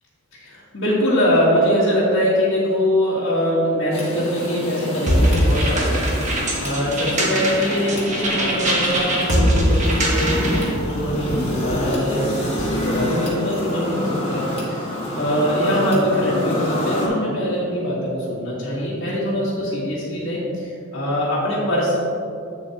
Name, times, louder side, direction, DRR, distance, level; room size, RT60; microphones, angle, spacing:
voice 1, 0.3-6.1 6.6-22.0, equal, 65° left, -9 dB, 1.3 m, -22 dB
sound 1, 3.9-17.1, left 1 dB, 30° left, 1.4 m, -27 dB
sound 2, 5.1-10.7, equal, 35° right, 1.3 m, -21 dB
sound 3, 9.3-13.2, right 1 dB, 55° right, 0.5 m, -35 dB
8.0 x 6.9 x 2.8 m, 2.5 s
head